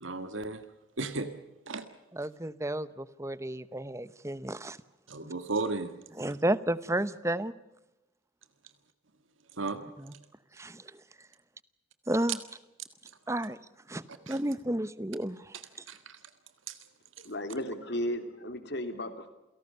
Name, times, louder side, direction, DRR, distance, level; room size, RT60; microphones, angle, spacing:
voice 1, 0.0-0.6 1.0-1.3 1.7-1.9 5.1-5.9 9.5-9.8 14.3-14.4 15.9-16.2 16.7-16.8, right 3 dB, 70° right, 9 dB, 1.7 m, -34 dB
voice 2, 2.1-4.8 6.2-7.5 10.1-10.2 10.5-10.9 12.1-12.4 13.3-13.6 13.9-15.5, right 1 dB, 15° right, 16 dB, 0.8 m, -32 dB
voice 3, 17.2-19.3, left 1 dB, 55° left, 8 dB, 2.8 m, -35 dB
29.0 x 18.0 x 6.8 m, 0.99 s
head